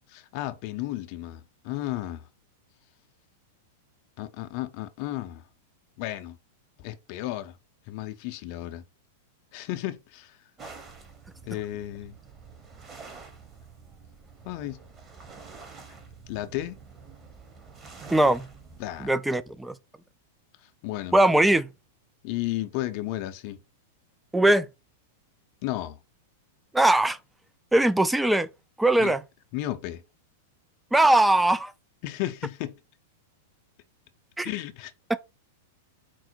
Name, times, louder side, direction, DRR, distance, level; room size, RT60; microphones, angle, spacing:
voice 1, 0.1-2.3 4.2-5.5 6.0-6.4 6.8-7.6 7.9-8.8 9.5-10.4 11.4-12.2 14.4-14.8 16.3-16.8 18.8-19.1 20.6-21.2 22.2-23.6 25.6-26.0 29.0-29.1 29.5-30.0 32.0-32.8 34.4-34.9, left 15 dB, 50° left, 0.5 m, -33 dB
sound 1, 10.6-19.2, right 4 dB, 25° right, 1.0 m, -47 dB
voice 2, 18.1-18.5 19.0-19.7 21.1-21.7 24.3-24.7 26.7-27.2 27.7-28.5 28.8-29.2 30.9-31.7 34.4-34.5, right 1 dB, 5° right, 0.4 m, -20 dB
4.5 x 2.0 x 4.3 m
hypercardioid pair, 100°, 0 cm